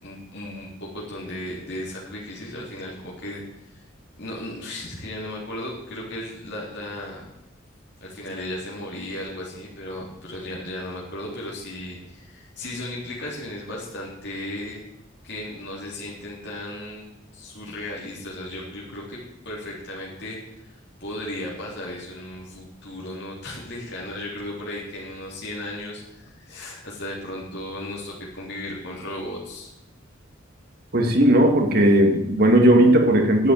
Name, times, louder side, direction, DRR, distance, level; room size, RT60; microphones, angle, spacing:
voice 1, 0.0-3.8 4.2-7.2 8.0-14.8 15.2-19.2 19.5-20.7 21.0-29.7, left 1 dB, 60° left, -4 dB, 3.7 m, -35 dB
voice 2, 30.9-33.5, right 1 dB, 50° right, 3 dB, 2.2 m, -16 dB
11.0 x 7.9 x 9.3 m, 0.83 s
head